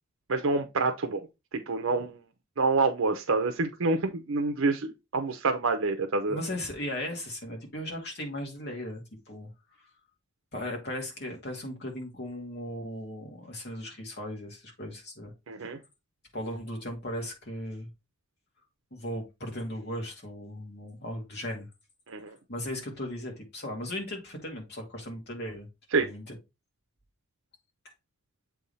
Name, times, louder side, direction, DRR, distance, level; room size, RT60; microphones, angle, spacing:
voice 1, 0.3-1.3 1.5-2.2 2.6-6.4 15.5-15.8 22.1-22.4 25.9-26.1, right 3 dB, 75° right, 0.7 m, -27 dB
voice 2, 6.3-9.5 10.5-15.3 16.3-17.9 18.9-21.7 22.2-25.7 26.0-26.4, left 1 dB, 50° left, 2.2 m, -37 dB
7.6 x 3.5 x 4.1 m
head